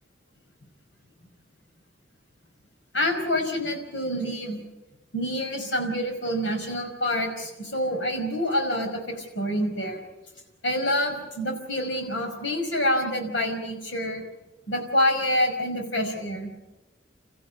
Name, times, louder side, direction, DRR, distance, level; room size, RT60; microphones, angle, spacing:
voice 1, 2.9-4.6 5.1-10.0 10.6-14.2 14.7-16.5, left 1 dB, 90° left, 4 dB, 5.2 m, -27 dB
29.5 x 14.5 x 8.4 m, 1.1 s
head